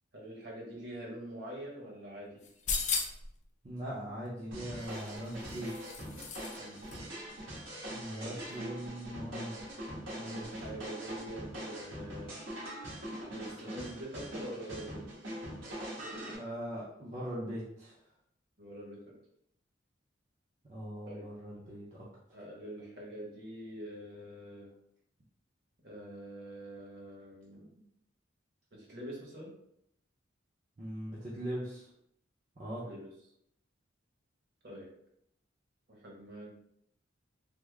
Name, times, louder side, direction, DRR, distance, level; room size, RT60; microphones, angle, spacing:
voice 1, 0.1-2.4 6.6-6.8 8.2-8.4 10.2-12.4 13.3-15.0 18.6-19.1 21.1-21.2 22.3-24.7 25.8-27.7 28.7-29.5 32.8-33.1 34.6-34.9 35.9-36.5, right 1 dB, 55° right, -2 dB, 1.0 m, -45 dB
sound 1, 2.4-3.3 4.8-6.6 6.9-7.0, left 5 dB, 40° left, 0.4 m, -36 dB
voice 2, 3.6-5.8 7.9-9.5 10.1-10.7 16.2-17.9 20.7-22.1 30.8-31.9 32.6-32.8, equal, 35° right, -7 dB, 0.6 m, -40 dB
sound 2, 4.5-16.4, equal, 85° right, 1.3 m, -42 dB
3.6 x 2.0 x 3.2 m, 0.73 s
head